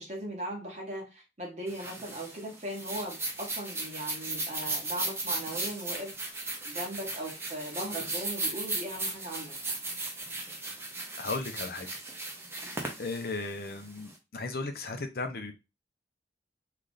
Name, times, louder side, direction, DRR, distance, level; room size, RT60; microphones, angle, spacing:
voice 1, 0.0-6.1 6.6-9.8 12.6-12.8, right 1 dB, 40° right, 1.4 m, -39 dB
sound 1, 1.7-14.1, right 2 dB, 15° right, 0.6 m, -36 dB
voice 2, 11.2-11.9 13.0-15.5, left 3 dB, 55° left, 0.6 m, -35 dB
3.2 x 2.4 x 3.9 m
head